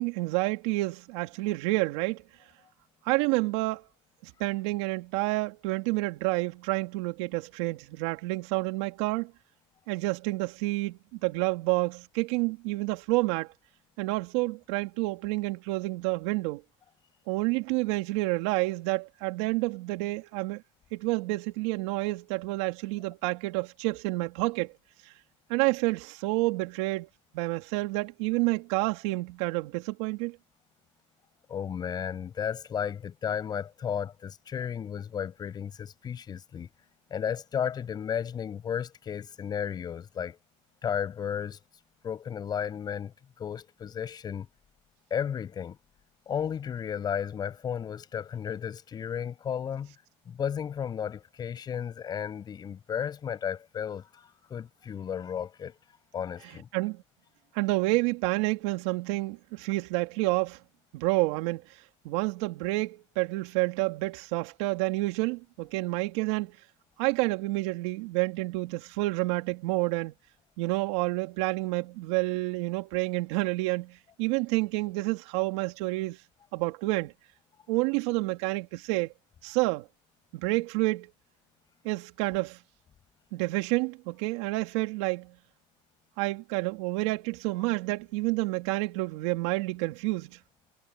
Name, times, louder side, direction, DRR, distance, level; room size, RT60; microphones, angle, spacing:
voice 1, 0.0-2.2 3.0-3.9 4.2-9.3 9.9-13.5 14.0-16.6 17.3-20.6 20.9-24.7 25.5-27.1 27.3-30.4 56.7-57.0 57.5-60.6 60.9-61.6 62.0-66.6 67.0-70.1 70.6-76.2 76.5-77.1 77.7-79.1 79.4-79.9 80.3-81.1 81.8-82.6 83.3-85.3 86.2-90.4, right 22 dB, 70° right, 2.8 m, -29 dB
voice 2, 31.5-36.7 37.1-40.4 40.8-41.6 42.0-44.5 45.1-45.8 46.3-49.9 50.3-55.8 56.1-56.7, left 8 dB, 25° left, 7.5 m, -34 dB
supercardioid pair, 150°, 16 cm